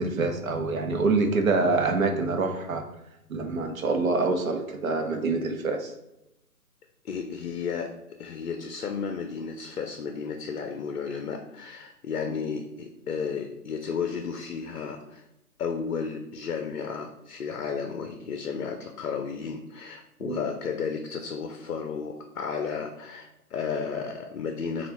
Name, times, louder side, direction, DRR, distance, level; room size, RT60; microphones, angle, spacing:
voice 1, 0.0-2.8 3.3-5.9 20.2-20.4, right 3 dB, 60° right, 4 dB, 0.8 m, -26 dB
voice 2, 7.0-15.2 15.6-24.9, left 6 dB, 65° left, 5 dB, 0.6 m, -33 dB
5.3 x 2.5 x 3.0 m, 0.87 s
figure-of-eight pair, 145°, 46 cm